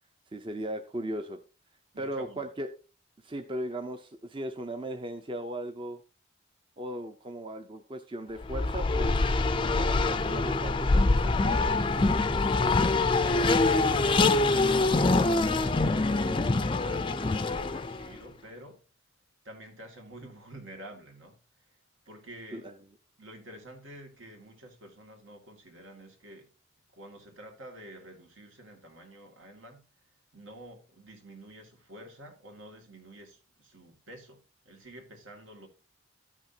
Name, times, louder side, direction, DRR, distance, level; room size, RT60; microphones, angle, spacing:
voice 1, 0.3-1.4 2.0-2.7 3.2-6.0 6.8-9.2 9.6-12.2 22.5-22.7, right 1 dB, 25° right, 0.6 m, -37 dB
voice 2, 1.9-2.4 13.2-13.9 14.5-15.4 15.8-18.8 19.4-21.4 22.1-22.7 23.2-26.5 26.9-29.9 30.3-35.7, right 1 dB, 75° right, 2.3 m, -48 dB
Race car auto racing, 8.4-18.1, left 3 dB, 25° left, 0.4 m, -25 dB
14.0 x 6.1 x 2.8 m
head